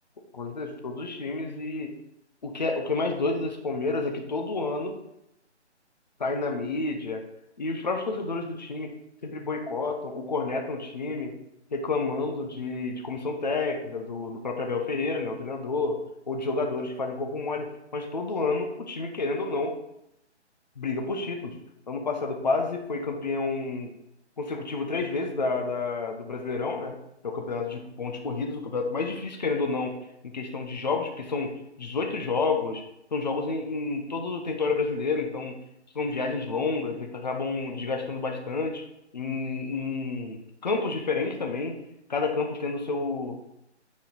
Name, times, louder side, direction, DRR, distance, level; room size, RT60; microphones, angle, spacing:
voice 1, 0.3-1.9 2.4-5.0 6.2-7.2 7.6-8.9 9.2-11.3 11.7-16.0 16.3-19.7 20.8-21.6 21.9-23.9 24.4-26.9 27.2-29.9 30.2-31.5 31.8-32.8 33.1-35.6 35.9-38.8 39.1-41.7 42.1-43.4, left 3 dB, 40° left, 2 dB, 1.1 m, -29 dB
9.9 x 4.2 x 4.1 m, 0.82 s
figure-of-eight pair, 150°, 35 cm